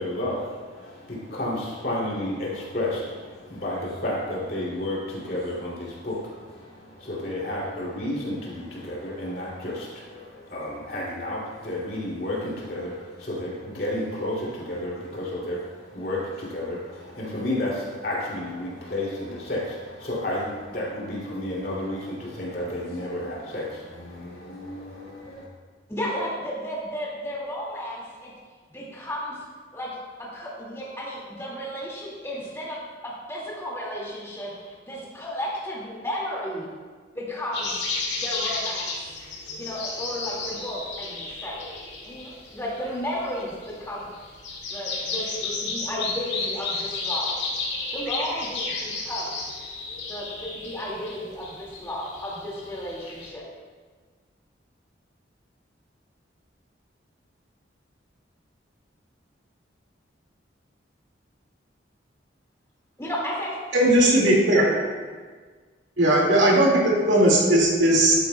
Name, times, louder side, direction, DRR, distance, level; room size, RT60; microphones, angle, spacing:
voice 1, 0.0-25.5, left 1 dB, 50° left, -6 dB, 2.7 m, -31 dB
voice 2, 25.9-28.3 28.7-29.4 29.7-29.9 30.2-36.7 37.1-37.7 38.2-38.9 39.6-41.6 42.0-44.1 44.7-47.3 47.9-49.4 50.1-53.4 63.0-63.6 64.3-64.4, equal, 15° left, -5 dB, 2.1 m, -33 dB
sound 1, 37.5-53.3, left 3 dB, 70° left, 2.0 m, -33 dB
voice 3, 63.7-64.8 66.0-68.2, right 1 dB, 80° right, -2 dB, 2.1 m, -18 dB
11.5 x 9.6 x 2.3 m, 1.5 s
head